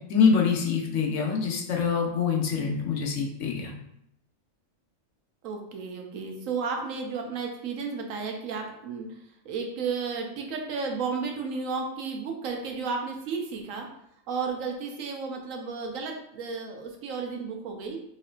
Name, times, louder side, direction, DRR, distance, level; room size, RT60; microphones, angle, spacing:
voice 1, 0.1-3.7, left 6 dB, 70° left, 0 dB, 1.0 m, -25 dB
voice 2, 5.4-9.2 9.4-13.9 14.3-18.0, right 5 dB, 75° right, 3 dB, 1.0 m, -33 dB
4.3 x 3.1 x 2.4 m, 0.75 s
omnidirectional pair, 1.4 m